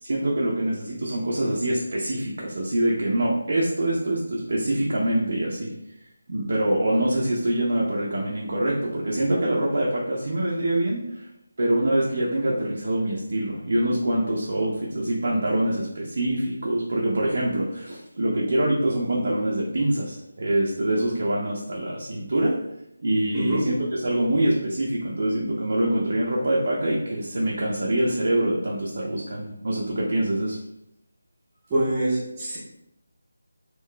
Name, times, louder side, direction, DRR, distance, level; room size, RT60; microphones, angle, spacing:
voice 1, 0.0-5.7 6.3-11.3 11.6-22.6 23.0-30.6, right 1 dB, 60° right, -4 dB, 0.6 m, -25 dB
voice 2, 31.7-32.6, right 1 dB, 15° right, -10 dB, 0.7 m, -24 dB
3.8 x 2.3 x 2.2 m, 0.82 s
figure-of-eight pair, 165°, 0 cm